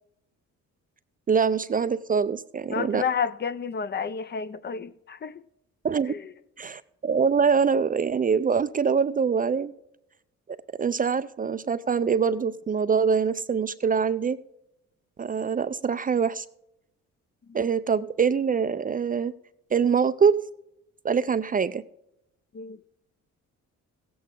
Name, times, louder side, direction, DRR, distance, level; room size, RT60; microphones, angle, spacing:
voice 1, 1.3-3.0 5.8-6.1 6.6-9.7 10.8-14.4 15.2-16.5 17.5-19.3 19.7-20.4 21.0-21.8, right 6 dB, 30° right, 0.4 m, -24 dB
voice 2, 2.7-5.4 6.1-6.3 17.5-17.6 22.5-22.8, left 6 dB, 35° left, 0.5 m, -31 dB
16.0 x 8.4 x 3.7 m
cardioid pair, 90°, 30 cm